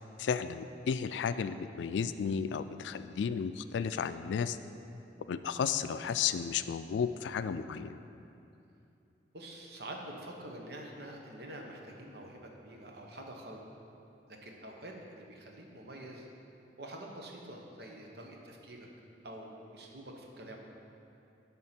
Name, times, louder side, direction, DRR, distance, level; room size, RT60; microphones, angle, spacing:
voice 1, 0.2-4.6 5.3-8.0, left 7 dB, 85° left, 12 dB, 0.3 m, -33 dB
voice 2, 9.3-13.6 14.3-16.3 16.8-18.9 19.2-20.6, right 1 dB, 65° right, 0 dB, 1.0 m, -46 dB
11.0 x 3.7 x 5.8 m, 2.8 s
head